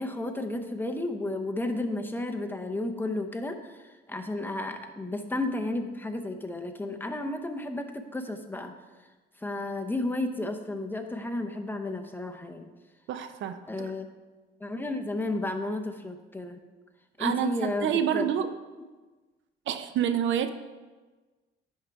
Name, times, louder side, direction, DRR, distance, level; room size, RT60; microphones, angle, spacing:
voice 1, 0.0-8.7 9.4-12.7 13.7-14.1 14.6-16.6 17.2-18.2, left 2 dB, 10° left, 5 dB, 0.7 m, -32 dB
voice 2, 13.1-13.9 17.2-18.5 19.7-20.5, right 9 dB, 70° right, 10 dB, 0.5 m, -28 dB
10.5 x 3.8 x 4.6 m, 1.3 s
cardioid pair, 90°, 20 cm